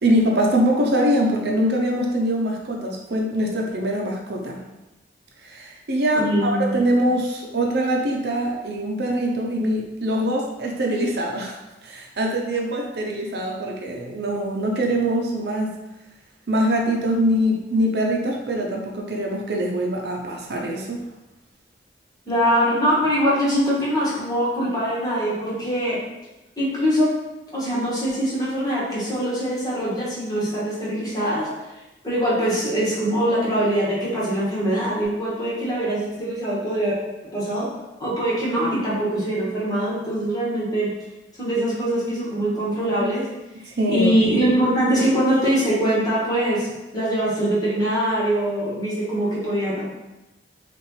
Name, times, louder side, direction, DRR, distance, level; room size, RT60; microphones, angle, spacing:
voice 1, 0.0-4.6 5.4-11.6 11.8-15.7 16.5-21.0 43.8-44.1, equal, 65° right, 0 dB, 0.7 m, -23 dB
voice 2, 6.1-6.8 22.2-26.0 26.6-27.1 27.5-31.5 32.0-37.0 37.3-37.7 38.0-40.9 41.4-43.3 43.9-46.7 46.9-49.8, equal, 20° left, -7 dB, 1.4 m, -22 dB
5.8 x 2.5 x 3.2 m, 1.0 s
head